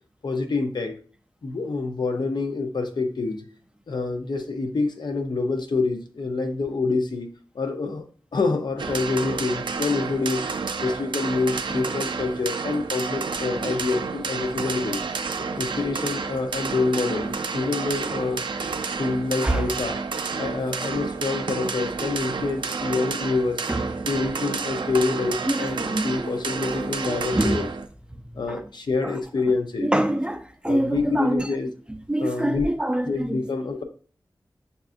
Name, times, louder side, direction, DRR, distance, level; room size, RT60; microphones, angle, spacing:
voice 1, 0.2-1.0 1.4-3.4 3.9-7.3 7.5-8.0 8.3-10.4 10.8-15.0 15.4-18.4 19.0-20.0 20.4-23.6 24.1-27.7 28.3-29.9 30.6-31.7 32.2-32.7 33.1-33.8, left 3 dB, 70° left, 0.5 m, -26 dB
sound 1, 8.8-27.9, right 4 dB, 85° right, 0.4 m, -30 dB
voice 2, 25.5-26.3 27.3-27.6 28.5-28.6 29.0-29.1 29.8-31.4 32.1-33.4, right 1 dB, 10° right, 0.4 m, -25 dB
6.6 x 2.4 x 2.5 m
wide cardioid pair, 85°, 8 cm